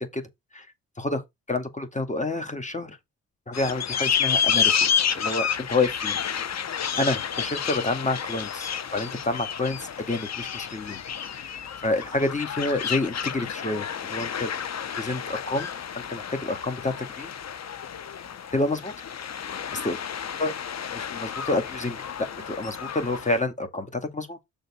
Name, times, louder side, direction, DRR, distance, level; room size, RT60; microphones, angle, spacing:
voice 1, 1.5-3.0 3.5-6.2 7.0-11.0 11.8-14.5 15.0-15.7 16.0-17.3 18.5-18.9 19.7-20.0 20.4-20.5 20.9-24.4, left 2 dB, 20° left, 2.2 m, -28 dB
sound 1, 3.5-23.4, left 7 dB, 45° left, 0.9 m, -30 dB
6.6 x 3.8 x 6.3 m
supercardioid pair, 55°, 36 cm